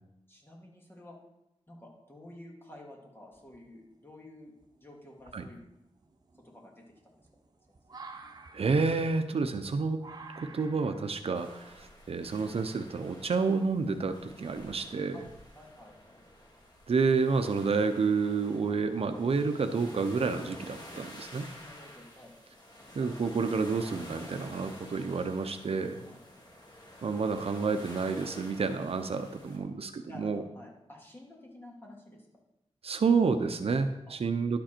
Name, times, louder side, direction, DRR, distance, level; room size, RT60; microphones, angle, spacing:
voice 1, 0.3-1.2 1.7-5.6 6.4-7.1 15.1-15.2 15.6-16.2 21.6-22.3 26.1-26.2 30.0-32.3 34.1-34.2, left 1 dB, 20° left, -1 dB, 2.4 m, -51 dB
sound 1, 3.3-3.9 4.6-4.7 5.2-13.2, right 4 dB, 35° right, 1.0 m, -51 dB
voice 2, 8.5-10.0 10.4-15.3 16.9-21.5 22.9-26.0 27.0-30.4 32.8-34.6, right 4 dB, 60° right, 7 dB, 0.7 m, -29 dB
sound 2, 11.3-29.6, left 1 dB, 40° left, 2.8 m, -50 dB
11.5 x 7.5 x 4.5 m, 0.88 s
wide cardioid pair, 120°, 11 cm